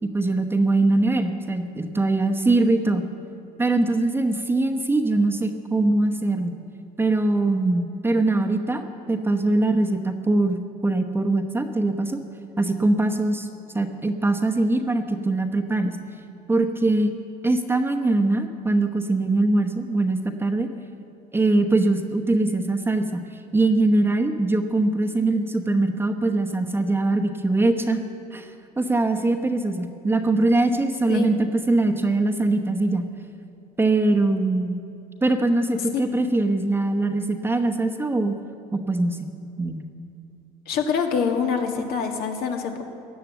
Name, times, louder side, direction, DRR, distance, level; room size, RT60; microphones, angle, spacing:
voice 1, 0.0-3.1 3.6-6.5 7.0-12.2 12.6-13.5 13.7-15.9 16.5-17.1 17.4-20.7 21.3-23.3 23.5-28.0 28.3-28.5 28.8-33.1 33.8-34.8 35.2-38.3 38.7-39.3 39.6-39.8, right 2 dB, 15° right, 4 dB, 1.0 m, -22 dB
voice 2, 40.7-42.8, left 6 dB, 70° left, 3 dB, 1.7 m, -25 dB
16.0 x 10.0 x 7.2 m, 2.7 s
cardioid pair, 110°, 17 cm